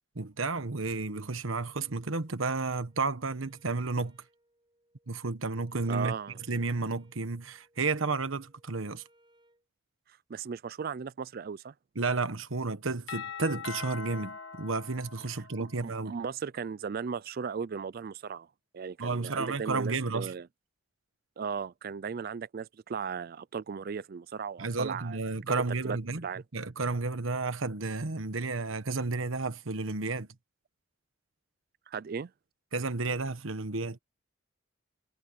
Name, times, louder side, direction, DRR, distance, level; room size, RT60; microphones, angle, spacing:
voice 1, 0.2-4.2 5.1-6.1 6.5-9.0 11.9-16.2 19.0-20.3 24.6-26.2 26.5-30.3 32.7-34.0, right 3 dB, 75° right, 1.3 m, -32 dB
Wind instrument woodwind instrument, 1.7-9.6, right 1 dB, 25° right, 6.8 m, -67 dB
voice 2, 5.9-6.4 10.3-11.7 15.6-18.5 18.7-20.5 21.4-25.2 25.5-25.6 25.8-26.0 26.2-26.4 31.9-32.3, right 6 dB, 45° right, 0.4 m, -36 dB
Doorbell, 13.1-15.9, left 5 dB, 65° left, 1.3 m, -42 dB
head